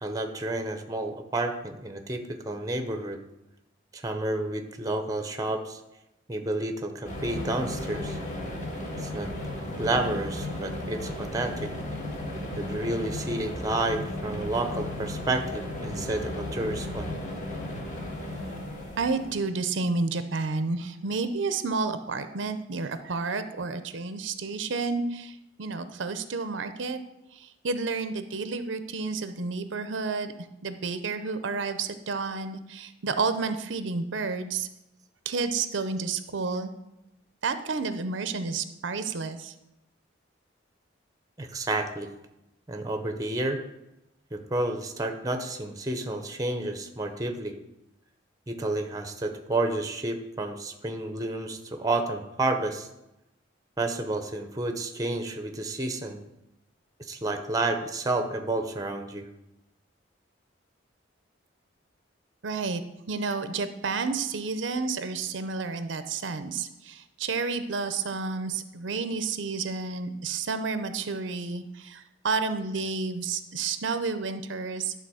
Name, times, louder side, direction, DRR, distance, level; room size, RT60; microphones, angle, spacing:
voice 1, 0.0-3.2 3.9-5.8 6.3-8.2 9.0-9.3 9.8-11.7 12.6-17.1 41.4-42.1 42.7-43.6 44.3-47.5 48.5-52.9 53.8-56.2 57.1-59.3, right 2 dB, 20° right, 6 dB, 0.7 m, -30 dB
sound 1, 7.0-19.4, left 1 dB, 40° left, 1.7 m, -35 dB
voice 2, 19.0-27.0 27.3-30.3 30.6-34.7 35.3-36.7 37.4-39.5 62.4-62.8 63.1-74.9, right 4 dB, 75° right, 10 dB, 0.6 m, -30 dB
11.5 x 3.9 x 6.3 m, 0.90 s
head